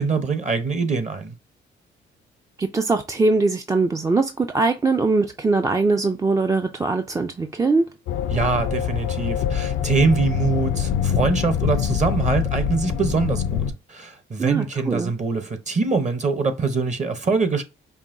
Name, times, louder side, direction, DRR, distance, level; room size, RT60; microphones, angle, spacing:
voice 1, 0.0-1.4 8.3-17.6, right 4 dB, 35° right, 0.8 m, -23 dB
voice 2, 2.6-7.9 14.4-15.1, right 3 dB, 15° right, 0.3 m, -21 dB
sound 1, 8.1-13.7, left 9 dB, 90° left, 0.5 m, -24 dB
5.4 x 2.2 x 2.5 m
cardioid pair, 90°, 20 cm